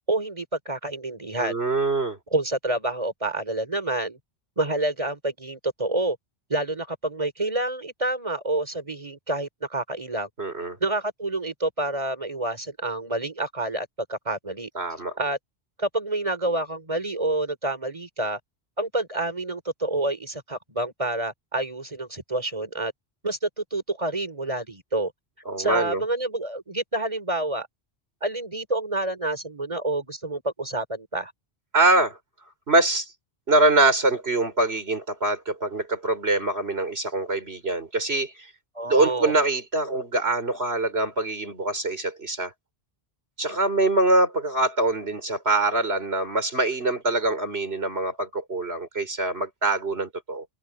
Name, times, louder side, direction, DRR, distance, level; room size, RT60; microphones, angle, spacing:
voice 1, 0.1-1.5 2.3-4.2 4.6-6.2 6.5-10.3 10.8-14.7 15.2-15.4 15.8-18.4 18.8-22.9 23.2-25.1 25.6-27.7 28.2-31.3 38.7-39.3, right 2 dB, 30° right, 3.7 m, -28 dB
voice 2, 1.4-2.2 10.4-10.8 14.7-15.1 25.5-26.0 31.7-32.2 32.7-33.1 33.5-38.5 38.8-42.5 43.4-50.4, right 2 dB, 80° right, 4.8 m, -24 dB
omnidirectional pair, 1.0 m